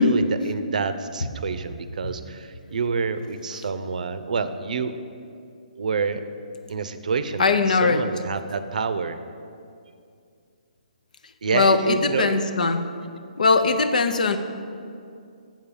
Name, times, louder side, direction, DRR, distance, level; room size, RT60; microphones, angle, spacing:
voice 1, 0.0-5.0 5.8-6.2 6.7-9.2 11.4-12.4, right 5 dB, 65° right, 11 dB, 0.6 m, -27 dB
voice 2, 7.4-8.0 11.5-12.8 13.4-14.4, left 4 dB, 70° left, 9 dB, 0.7 m, -20 dB
7.4 x 5.6 x 7.1 m, 2.4 s
hypercardioid pair, 150°, 4 cm